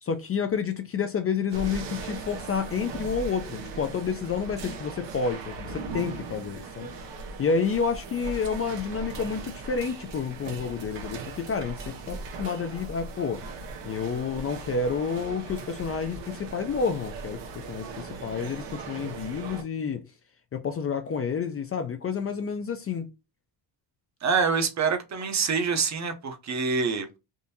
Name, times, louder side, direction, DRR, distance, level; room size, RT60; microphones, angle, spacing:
voice 1, 0.0-6.9 7.4-13.4 13.8-20.0 20.5-23.1, left 5 dB, 35° left, 0.4 m, -29 dB
sound 1, 1.5-19.6, right 4 dB, 85° right, 0.9 m, -39 dB
voice 2, 24.2-27.2, right 5 dB, 40° right, 0.8 m, -26 dB
3.6 x 2.5 x 2.6 m
cardioid pair, 120°, 42 cm